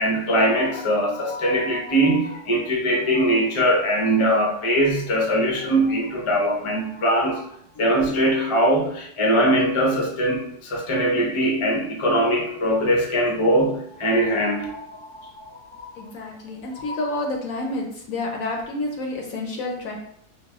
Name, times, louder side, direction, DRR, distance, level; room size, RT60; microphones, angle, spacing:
voice 1, 0.0-7.5 7.8-16.0 16.8-17.1, equal, 35° left, -2 dB, 0.5 m, -22 dB
voice 2, 16.0-20.0, left 2 dB, 70° left, 1 dB, 0.9 m, -29 dB
5.3 x 2.2 x 2.3 m, 0.70 s
omnidirectional pair, 1.7 m